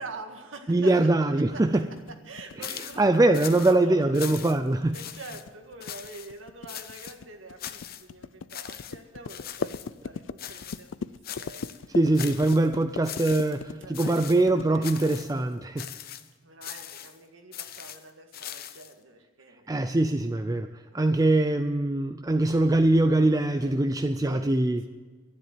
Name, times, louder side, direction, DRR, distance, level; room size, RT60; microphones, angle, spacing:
voice 1, 0.0-0.9 1.4-1.6 2.2-4.5 4.9-12.0 13.7-15.6 16.4-19.7 20.9-21.1 23.6-23.7 24.2-24.5, right 3 dB, 85° right, 5 dB, 1.8 m, -45 dB
voice 2, 0.7-1.9 3.0-5.0 11.9-15.9 19.7-20.7 20.9-24.8, right 2 dB, 20° right, 8 dB, 0.4 m, -23 dB
sound 1, 1.8-15.5, left 5 dB, 75° left, 0.4 m, -40 dB
sound 2, 2.6-3.0 3.3-3.8 4.1-4.7 4.9-5.4 5.8-6.3 6.7-7.2 7.6-8.1 8.5-9.0 9.3-9.9 10.4-10.9 11.2-11.8 12.1-12.7 13.0-13.6 13.9-14.5 14.8-15.3 15.8-16.3 16.6-17.2 17.5-18.9, left 10 dB, 50° left, 0.8 m, -40 dB
12.0 x 10.5 x 7.8 m, 1.4 s
head